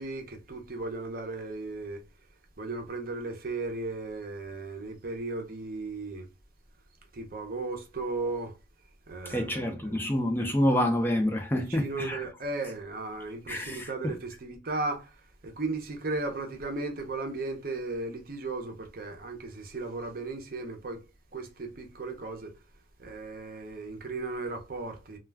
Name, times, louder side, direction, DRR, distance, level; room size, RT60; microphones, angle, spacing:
voice 1, 0.0-2.0 2.6-6.3 7.1-8.6 9.1-9.9 11.5-21.0 21.3-22.5 23.0-25.2, right 3 dB, 50° right, 0.6 m, -36 dB
voice 2, 9.3-12.2 13.5-14.1, equal, 10° left, 0.4 m, -27 dB
2.3 x 2.2 x 3.3 m
head